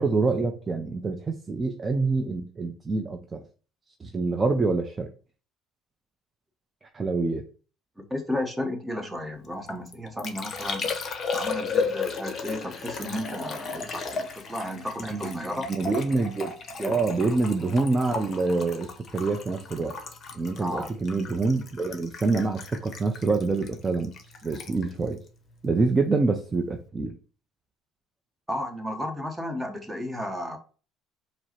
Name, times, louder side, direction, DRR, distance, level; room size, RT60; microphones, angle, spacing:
voice 1, 0.0-3.4 4.0-5.1 6.9-7.4 15.0-16.5 16.8-20.0 20.4-24.1 24.4-25.2 25.6-27.2, right 3 dB, 25° right, 4 dB, 0.5 m, -26 dB
voice 2, 8.0-10.9 11.3-15.7 16.8-17.0 20.6-20.9 28.5-30.6, left 1 dB, 10° right, 4 dB, 1.0 m, -33 dB
Liquid, 9.4-26.1 26.3-26.9, left 5 dB, 45° left, 0.8 m, -35 dB
4.5 x 2.0 x 4.3 m, 0.38 s
supercardioid pair, 90°, 0 cm